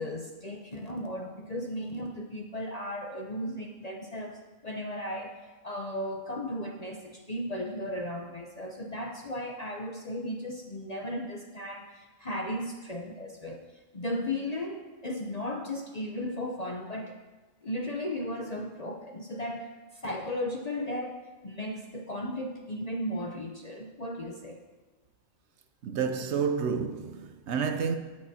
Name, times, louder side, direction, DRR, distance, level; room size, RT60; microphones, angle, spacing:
voice 1, 0.0-5.3 5.6-17.2 17.6-24.6, left 1 dB, 40° left, 0.6 m, -36 dB
voice 2, 25.8-28.0, right 6 dB, 65° right, 0.8 m, -29 dB
19.0 x 6.7 x 2.8 m
omnidirectional pair, 1.4 m